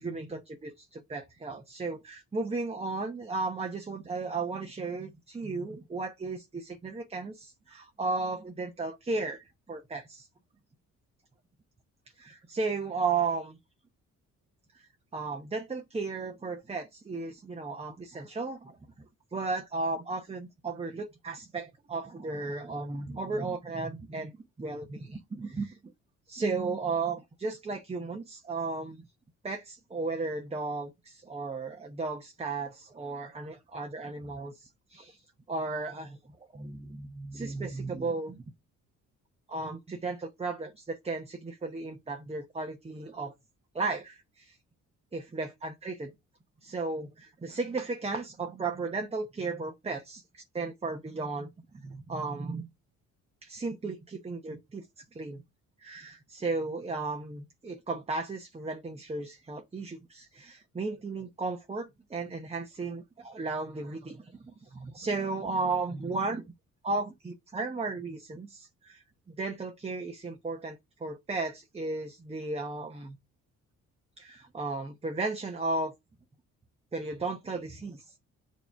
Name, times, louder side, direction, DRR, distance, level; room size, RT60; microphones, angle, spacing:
voice 1, 0.0-10.3 12.2-13.6 15.1-18.8 19.3-24.3 24.6-25.8 26.3-29.0 29.4-35.2 35.5-38.4 39.5-43.3 43.7-44.6 45.1-46.1 46.6-51.5 51.7-52.7 53.4-55.4 55.8-66.4 66.8-73.2 74.2-75.9 76.9-78.0, right 3 dB, 20° right, 0.9 m, -35 dB
6.9 x 3.1 x 5.6 m
cardioid pair, 90°, 30 cm